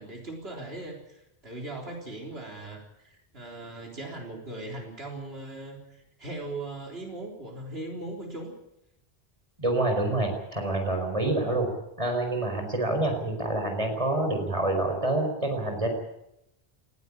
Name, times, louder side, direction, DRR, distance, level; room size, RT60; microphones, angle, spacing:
voice 1, 0.0-8.5, right 2 dB, 75° right, 0 dB, 4.0 m, -39 dB
voice 2, 9.6-11.7 12.0-15.9, right 2 dB, 30° right, 4 dB, 5.0 m, -27 dB
19.5 x 16.0 x 9.9 m, 0.85 s
omnidirectional pair, 1.1 m